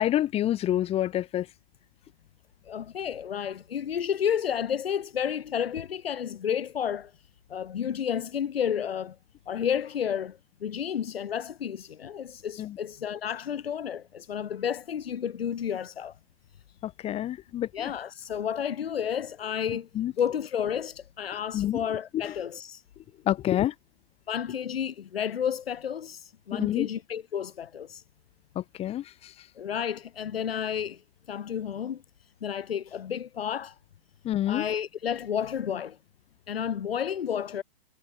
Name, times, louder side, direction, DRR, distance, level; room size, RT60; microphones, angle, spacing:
voice 1, 0.0-1.5 12.6-12.8 16.8-17.9 19.9-20.1 21.5-21.8 22.1-22.2 23.3-23.7 26.5-26.9 28.6-29.5 34.2-34.7, left 12 dB, 20° left, 3.6 m, -28 dB
voice 2, 2.7-7.1 7.5-9.2 9.5-16.2 17.7-19.9 20.2-22.8 24.3-28.0 29.6-31.0 31.3-32.0 32.4-33.8 34.5-36.0 36.5-37.6, left 8 dB, 75° left, 7.2 m, -31 dB
hypercardioid pair, 150°, 30 cm